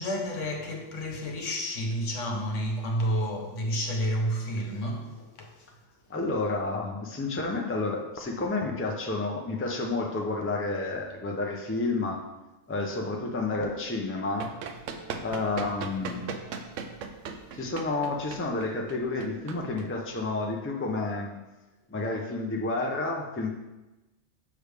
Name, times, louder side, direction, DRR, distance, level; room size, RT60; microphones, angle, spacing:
voice 1, 0.0-5.6, equal, 75° left, 1.3 m, -30 dB
voice 2, 6.1-12.3 12.7-14.5 15.2-16.3 17.5-21.4 21.9-23.5, left 3 dB, 15° left, 0.5 m, -30 dB
Run, 14.2-20.5, right 5 dB, 75° right, 1.0 m, -39 dB
6.7 x 6.1 x 3.4 m
omnidirectional pair, 1.3 m